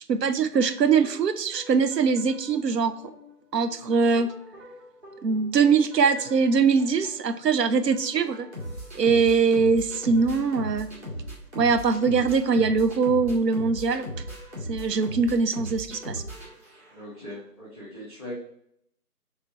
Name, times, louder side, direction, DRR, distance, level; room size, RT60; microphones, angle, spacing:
voice 1, 0.1-2.9 3.5-4.3 5.2-8.5 8.9-10.9 11.6-14.1 14.7-16.2, right 5 dB, 80° right, 10 dB, 0.6 m, -22 dB
sound 1, 0.5-17.2, equal, 45° right, 1.7 m, -40 dB
voice 2, 16.9-18.3, left 1 dB, 25° right, -10 dB, 1.0 m, -40 dB
3.5 x 3.3 x 3.8 m, 0.72 s
figure-of-eight pair, 165°, 48 cm